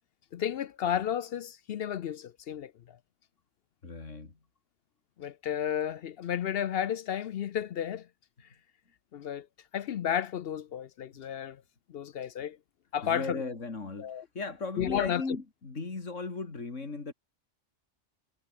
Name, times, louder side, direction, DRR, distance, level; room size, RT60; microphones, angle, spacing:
voice 1, 0.3-2.7 5.2-8.1 9.1-9.5 9.7-11.6 11.9-12.6 12.9-13.4 14.0-14.2 14.8-15.2, left 9 dB, 60° left, 0.7 m, -32 dB
voice 2, 3.8-4.3 13.0-17.1, left 3 dB, 80° left, 3.3 m, -37 dB
omnidirectional pair, 1.3 m